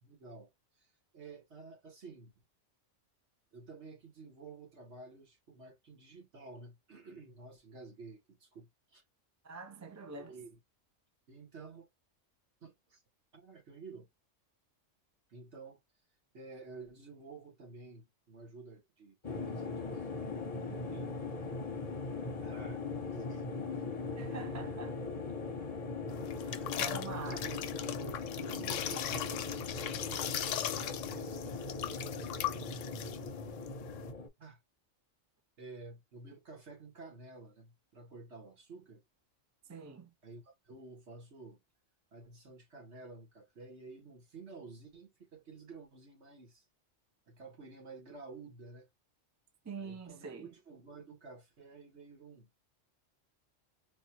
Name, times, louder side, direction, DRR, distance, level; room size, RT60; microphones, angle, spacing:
voice 1, 0.0-0.5 0.8-0.9 1.1-2.3 3.5-9.0 10.2-10.6 11.3-11.9 12.6-13.0 13.3-14.1 15.3-15.8 16.3-21.2 22.4-22.8 23.1-23.5 23.7-23.9 26.4-27.6 28.3-31.7 34.4-34.6 35.6-39.0 40.2-41.6 42.1-46.6 47.3-48.9 49.8-52.7, right 3 dB, 60° right, 1.8 m, -51 dB
voice 2, 9.4-10.3 24.2-25.0 26.4-27.6 39.7-40.1 49.6-50.5, right 4 dB, 20° right, 0.5 m, -45 dB
sound 1, 19.2-34.3, left 4 dB, 35° left, 0.8 m, -39 dB
sound 2, 26.1-34.1, left 11 dB, 75° left, 0.9 m, -39 dB
4.3 x 2.4 x 2.8 m
omnidirectional pair, 1.3 m